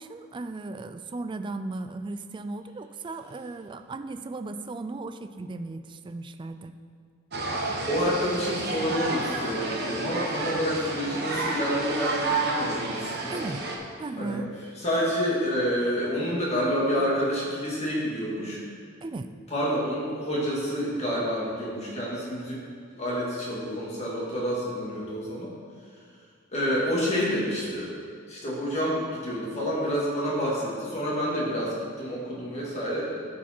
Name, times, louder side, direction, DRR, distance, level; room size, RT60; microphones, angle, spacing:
voice 1, 0.0-6.7 13.3-13.6 14.0-14.5 19.0-19.3, right 3 dB, 25° right, 9 dB, 0.3 m, -36 dB
sound 1, 7.3-13.8, right 3 dB, 55° right, 1.0 m, -30 dB
voice 2, 7.9-13.4 14.2-14.4 14.8-18.6 19.5-22.6 22.9-25.5 26.5-27.9 28.3-33.4, equal, 35° left, -6 dB, 2.1 m, -28 dB
11.0 x 4.8 x 4.5 m, 2.1 s
head